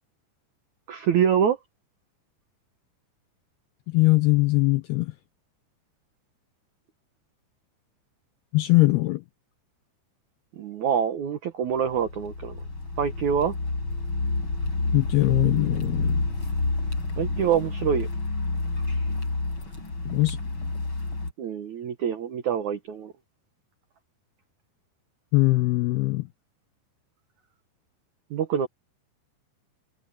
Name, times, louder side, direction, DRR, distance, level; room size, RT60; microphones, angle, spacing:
voice 1, 0.9-1.6 10.6-12.6 13.0-13.6 17.2-18.1 21.4-23.1 28.3-28.7, right 8 dB, 90° right, 1.6 m, -25 dB
voice 2, 3.9-5.2 8.5-9.2 14.9-16.3 20.1-20.4 25.3-26.3, left 21 dB, 85° left, 2.2 m, -21 dB
Car, 11.8-21.3, left 3 dB, 25° left, 5.9 m, -29 dB
omnidirectional pair, 5.3 m